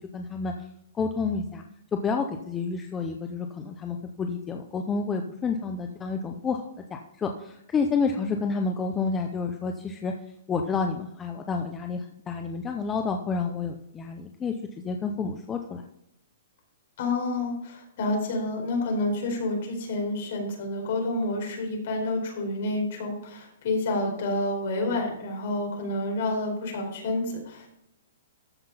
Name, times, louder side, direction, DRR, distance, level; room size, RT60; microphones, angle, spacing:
voice 1, 0.1-0.5 0.9-1.6 1.9-10.1 10.5-15.8, left 4 dB, 10° left, 4 dB, 0.5 m, -29 dB
voice 2, 17.0-27.7, left 2 dB, 45° left, 1 dB, 4.3 m, -29 dB
13.5 x 5.8 x 5.7 m, 0.79 s
hypercardioid pair, 175°, 0 cm